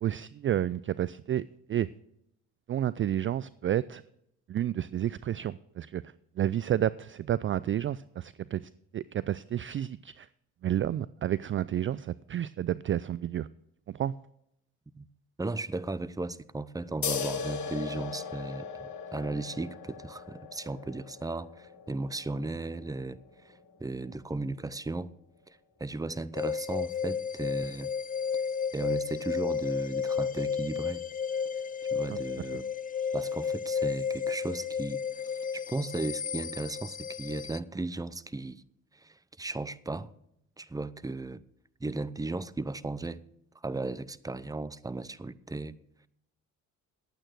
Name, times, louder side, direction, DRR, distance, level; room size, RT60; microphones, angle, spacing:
voice 1, 0.0-1.4 1.7-1.9 2.7-4.0 4.5-6.0 6.4-8.6 8.9-10.3 10.6-13.5 13.9-14.1, right 11 dB, 35° right, 0.4 m, -30 dB
voice 2, 15.4-25.1 25.5-27.9 28.7-31.0 31.9-32.6 33.1-38.6 38.9-40.1 40.6-41.4 41.8-43.2 43.6-45.8, right 2 dB, 10° right, 0.7 m, -36 dB
sound 1, 17.0-24.2, left 6 dB, 50° left, 2.7 m, -39 dB
sound 2, 26.3-37.6, left 6 dB, 20° left, 0.5 m, -32 dB
11.5 x 8.8 x 6.2 m
hypercardioid pair, 55°, 38 cm